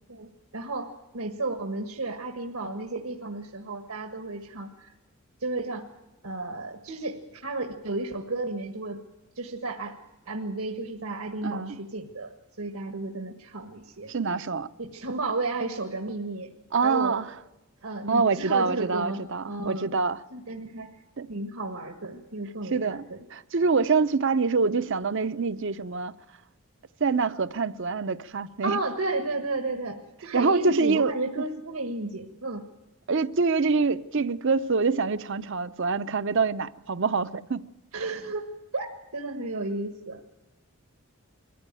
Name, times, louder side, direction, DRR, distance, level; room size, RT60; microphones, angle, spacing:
voice 1, 0.1-4.9 5.4-5.9 6.2-9.0 9.3-10.0 10.3-12.3 12.6-14.1 14.8-16.5 16.8-17.2 17.8-19.9 20.3-20.9 21.3-23.2 28.6-32.7 37.9-40.2, right 2 dB, 80° right, 1.6 m, -33 dB
voice 2, 11.4-11.8 14.1-14.7 16.7-17.3 18.1-20.2 21.2-21.3 22.7-23.0 23.3-26.1 27.0-28.8 30.3-31.1 33.1-37.6, right 4 dB, 55° right, 0.7 m, -25 dB
22.5 x 14.5 x 9.0 m
head